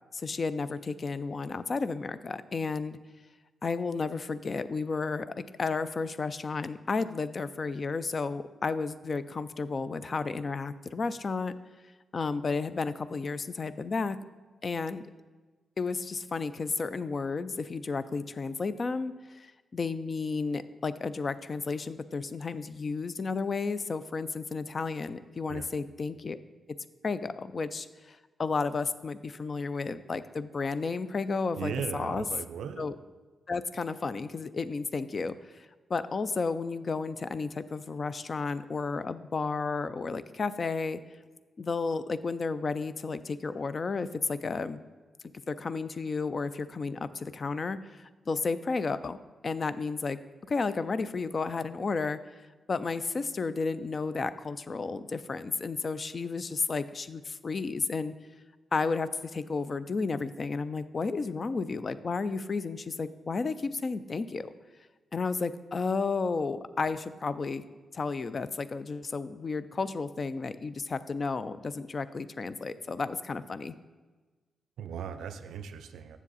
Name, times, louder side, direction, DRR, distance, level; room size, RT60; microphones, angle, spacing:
voice 1, 0.1-3.0 3.6-11.5 12.1-14.2 14.6-15.0 15.8-26.4 27.0-32.2 32.8-33.0 33.5-41.0 41.6-44.8 45.5-50.2 50.5-52.2 52.7-58.1 58.7-64.5 65.1-67.6 67.9-73.7, left 4 dB, 50° left, 14 dB, 0.4 m, -32 dB
voice 2, 31.6-32.9 74.8-76.2, right 7 dB, 80° right, 11 dB, 0.4 m, -37 dB
7.2 x 6.9 x 4.0 m, 1.3 s
supercardioid pair, 45°, 0 cm